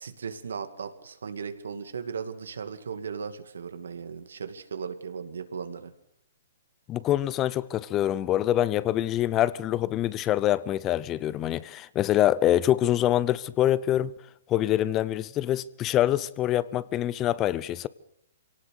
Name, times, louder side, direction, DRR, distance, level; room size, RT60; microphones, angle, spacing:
voice 1, 0.0-5.9, right 6 dB, 85° right, 2.4 m, -37 dB
voice 2, 6.9-14.1 14.5-17.9, left 12 dB, 25° left, 0.8 m, -25 dB
24.0 x 18.0 x 6.7 m
hypercardioid pair, 145°, 0 cm